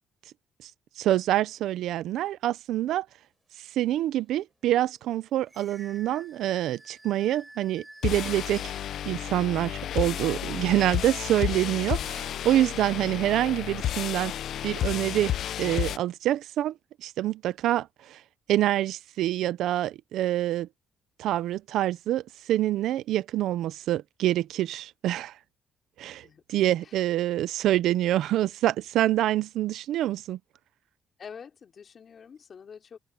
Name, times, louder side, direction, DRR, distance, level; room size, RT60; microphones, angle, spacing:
voice 1, 1.0-3.1 3.6-8.7 9.1-14.3 14.6-18.2 18.5-20.7 21.2-25.3 26.0-30.4, right 13 dB, 85° right, 0.7 m, -26 dB
sound 1, 4.1-4.2 4.8-9.5 10.0-10.7, right 2 dB, 15° right, 7.1 m, -51 dB
sound 2, 8.0-16.0, left 11 dB, 70° left, 0.6 m, -31 dB
voice 2, 31.2-33.0, left 6 dB, 50° left, 4.3 m, -46 dB
open air
cardioid pair, 90°, 0 cm